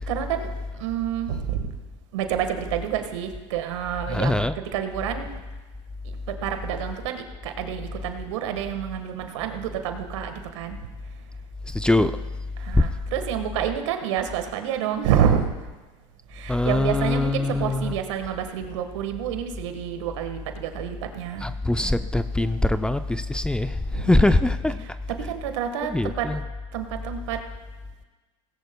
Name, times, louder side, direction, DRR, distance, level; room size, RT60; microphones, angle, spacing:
voice 1, 0.1-1.7 2.1-5.3 6.0-11.2 12.6-15.5 16.3-21.5 23.9-24.3 24.8-26.3 26.7-27.4, right 9 dB, 75° right, 7 dB, 1.5 m, -28 dB
voice 2, 4.1-4.5 11.7-12.1 12.8-12.9 16.5-17.9 21.4-24.8 25.9-26.4, left 2 dB, 5° left, 11 dB, 0.5 m, -22 dB
18.5 x 16.5 x 2.3 m, 1.2 s
hypercardioid pair, 90°, 16 cm